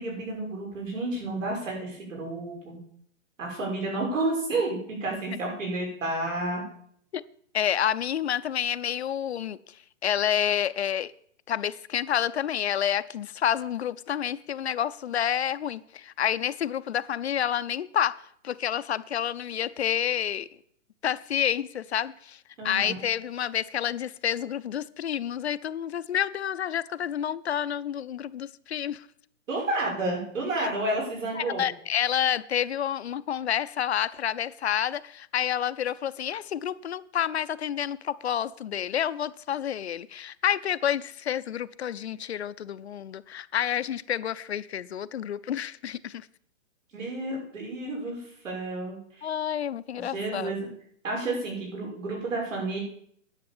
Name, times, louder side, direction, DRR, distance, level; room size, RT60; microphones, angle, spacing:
voice 1, 0.0-2.8 3.4-6.6 22.6-23.0 29.5-31.7 46.9-49.3 50.0-50.7 51.0-52.8, right 2 dB, 80° right, 6.4 m, -31 dB
voice 2, 7.5-11.1 11.5-20.5 21.0-29.1 30.6-30.7 31.4-46.3 49.2-50.5, left 9 dB, 60° left, 0.5 m, -29 dB
10.5 x 7.4 x 7.2 m
hypercardioid pair, 180°, 38 cm